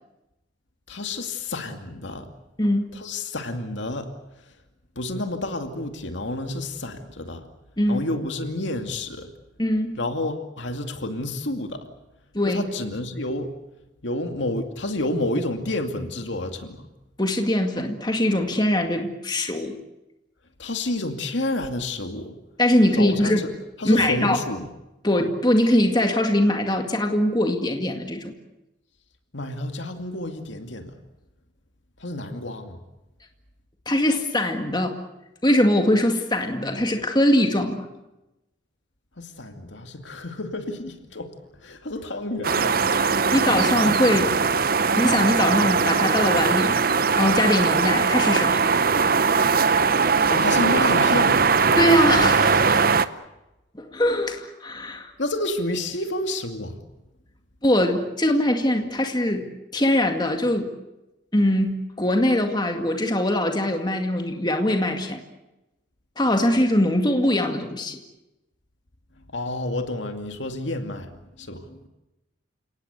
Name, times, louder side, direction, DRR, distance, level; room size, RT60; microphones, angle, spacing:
voice 1, 0.9-2.3 2.9-4.1 5.0-7.4 7.9-9.3 10.0-11.9 12.5-13.5 14.0-16.9 20.6-22.3 22.9-23.5 23.8-24.7 29.3-31.0 32.0-32.8 39.2-41.3 41.6-42.8 50.3-51.5 55.2-56.8 69.3-71.8, left 2 dB, 70° left, 6 dB, 2.4 m, -29 dB
voice 2, 2.6-2.9 7.8-8.0 9.6-10.0 12.3-12.6 17.2-19.8 22.6-23.4 23.8-24.4 25.0-28.3 33.9-35.0 35.4-37.9 43.3-44.4 45.0-46.8 47.2-48.7 51.8-52.8 53.8-55.1 57.6-59.5 59.7-60.7 61.3-65.2 66.2-68.0, left 1 dB, 20° left, 4 dB, 2.1 m, -22 dB
sound 1, 42.4-53.1, right 5 dB, 50° right, 0.8 m, -20 dB
29.5 x 18.0 x 8.2 m, 0.97 s
head